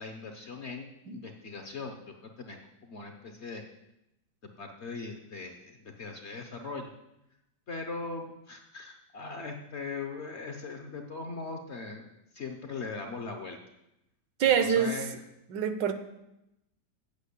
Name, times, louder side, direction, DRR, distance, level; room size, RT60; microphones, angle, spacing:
voice 1, 0.0-2.6 2.8-3.6 4.6-6.9 7.7-13.6 14.6-15.2, left 4 dB, 50° left, 4 dB, 0.9 m, -40 dB
voice 2, 14.4-14.9 15.5-15.9, right 8 dB, 75° right, 10 dB, 1.4 m, -25 dB
8.4 x 6.1 x 8.2 m, 0.87 s
omnidirectional pair, 2.0 m